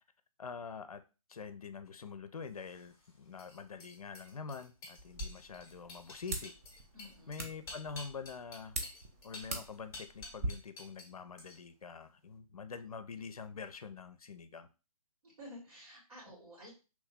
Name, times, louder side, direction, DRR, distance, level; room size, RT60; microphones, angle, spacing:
voice 1, 0.4-1.0 1.3-6.5 7.3-8.8 9.2-14.7, left 5 dB, 70° left, 10 dB, 0.4 m, -45 dB
sound 1, 2.6-11.1 11.4-11.8, left 3 dB, 15° left, 0.7 m, -51 dB
sound 2, 5.0-10.5, right 2 dB, 25° right, 0.5 m, -43 dB
voice 2, 6.9-7.4 15.2-16.7, left 1 dB, 75° right, -5 dB, 1.9 m, -52 dB
3.0 x 2.7 x 3.5 m, 0.32 s
figure-of-eight pair, 135°, 19 cm